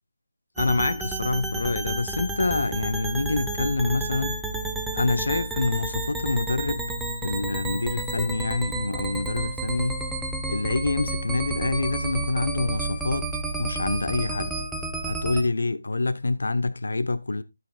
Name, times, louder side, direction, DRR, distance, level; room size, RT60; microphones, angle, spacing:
voice 1, 0.6-4.4 4.9-6.9 7.2-10.0 10.5-14.6 15.1-17.4, left 3 dB, 70° left, 0.8 m, -26 dB
sound 1, 0.6-15.4, right 2 dB, 5° right, 1.0 m, -31 dB
12.5 x 9.2 x 2.3 m
figure-of-eight pair, 160°, 0 cm